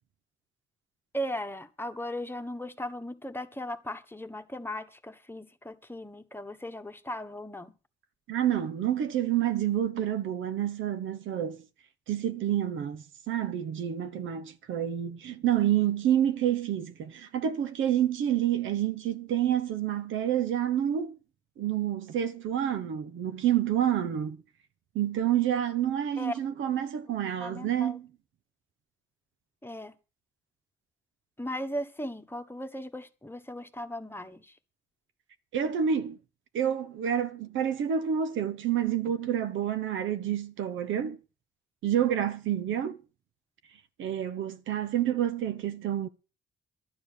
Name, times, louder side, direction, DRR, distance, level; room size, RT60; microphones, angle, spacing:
voice 1, 1.1-7.7 26.2-26.3 27.4-28.0 29.6-29.9 31.4-34.5, equal, 10° left, 1.4 m, -37 dB
voice 2, 8.3-11.6 12.1-21.2 21.6-24.4 24.9-28.1 35.5-36.2 36.5-41.2 41.8-43.0 44.0-46.1, right 10 dB, 75° right, 1.1 m, -28 dB
12.0 x 9.6 x 6.7 m
cardioid pair, 90°, 20 cm